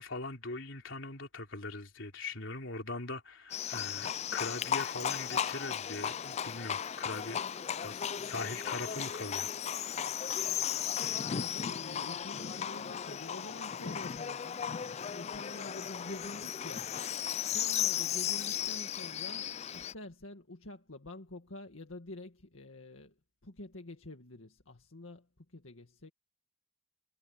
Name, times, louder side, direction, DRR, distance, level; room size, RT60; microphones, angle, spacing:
voice 1, 0.0-7.4 7.8-9.5, left 3 dB, 70° left, 3.4 m, -41 dB
Livestock farm animals working animals, 3.5-19.9, left 9 dB, 35° left, 0.3 m, -35 dB
voice 2, 11.3-14.7 15.1-16.9 17.5-23.1 23.4-26.1, left 1 dB, 90° left, 2.0 m, -47 dB
head